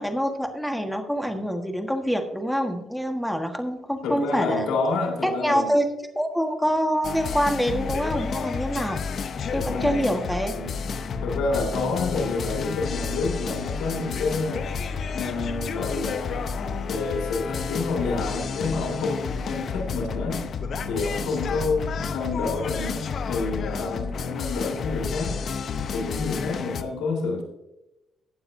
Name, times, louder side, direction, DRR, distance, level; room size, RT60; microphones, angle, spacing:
voice 1, 0.0-4.6 5.2-5.8 6.1-9.0 9.5-10.5, equal, ahead, 5 dB, 1.5 m, -25 dB
voice 2, 4.0-5.7 9.5-10.0 10.5-10.9 11.2-14.7 15.1-20.4 20.9-25.4 25.9-27.4, left 3 dB, 85° left, 0 dB, 2.1 m, -28 dB
sound 1, 7.0-26.8, left 5 dB, 55° left, 0.7 m, -31 dB
15.0 x 9.0 x 2.7 m, 0.95 s
cardioid pair, 90°, 0 cm